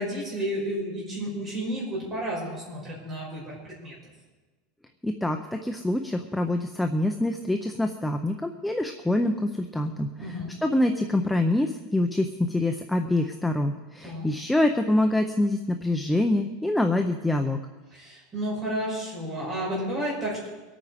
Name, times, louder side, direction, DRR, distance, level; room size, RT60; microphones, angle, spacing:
voice 1, 0.0-4.0 10.2-10.5 14.0-14.3 17.9-20.5, equal, 20° right, -5 dB, 5.7 m, -31 dB
voice 2, 5.0-10.1 10.6-17.6, left 1 dB, 5° left, 5 dB, 0.5 m, -25 dB
23.5 x 8.7 x 4.9 m, 1.3 s
supercardioid pair, 180°, 0 cm